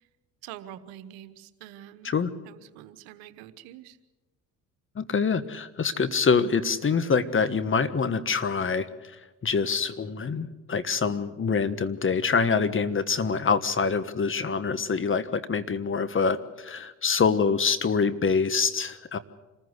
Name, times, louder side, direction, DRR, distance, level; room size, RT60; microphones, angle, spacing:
voice 1, 0.4-2.1 2.4-4.0, right 12 dB, 85° right, 12 dB, 1.3 m, -45 dB
voice 2, 4.9-19.2, left 5 dB, 35° left, 14 dB, 1.4 m, -25 dB
26.0 x 15.0 x 8.1 m, 1.1 s
supercardioid pair, 70°, 36 cm